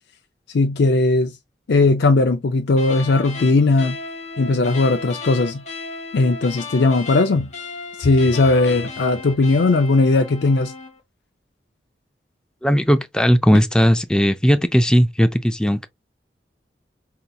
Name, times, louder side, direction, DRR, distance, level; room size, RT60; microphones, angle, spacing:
voice 1, 0.5-1.4 1.7-4.0 4.4-5.6 6.1-7.5 8.0-10.7, left 3 dB, 70° left, 0.4 m, -18 dB
sound 1, 2.7-11.0, left 4 dB, 40° left, 0.8 m, -35 dB
voice 2, 12.6-15.9, equal, 5° left, 0.3 m, -17 dB
5.1 x 2.8 x 2.2 m
head